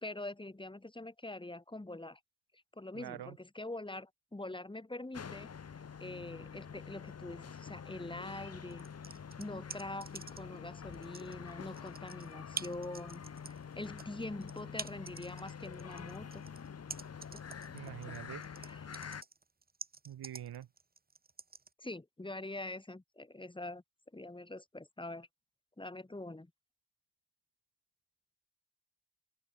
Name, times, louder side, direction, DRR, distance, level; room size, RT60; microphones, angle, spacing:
voice 1, 0.0-2.2 2.8-5.5 6.0-16.4 18.6-19.0 21.8-23.8 24.1-25.3 25.8-26.5, left 2 dB, 15° left, 2.8 m, -44 dB
voice 2, 2.9-3.4 17.7-18.4 20.0-20.7, right 11 dB, 75° right, 4.1 m, -45 dB
sound 1, 5.1-19.2, left 7 dB, 40° left, 1.4 m, -47 dB
sound 2, 8.7-10.6 10.9-21.7, right 4 dB, 25° right, 1.5 m, -47 dB
open air
supercardioid pair, 60°, 38 cm